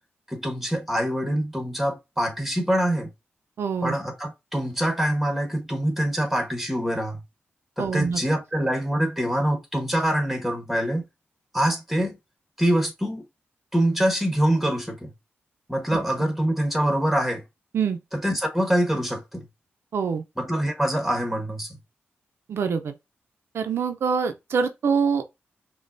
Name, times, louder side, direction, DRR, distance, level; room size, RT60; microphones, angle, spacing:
voice 1, 0.3-3.1 3.8-7.2 7.8-11.0 11.5-12.2 12.6-13.2 13.7-15.1 15.7-17.4 18.1-19.5 20.4-21.8, right 1 dB, 5° right, 1.3 m, -25 dB
voice 2, 3.6-4.0 7.8-8.2 17.7-18.0 19.9-20.2 22.5-22.9 23.5-25.3, right 6 dB, 80° right, 0.5 m, -25 dB
5.2 x 2.3 x 2.6 m
cardioid pair, 90°, 4 cm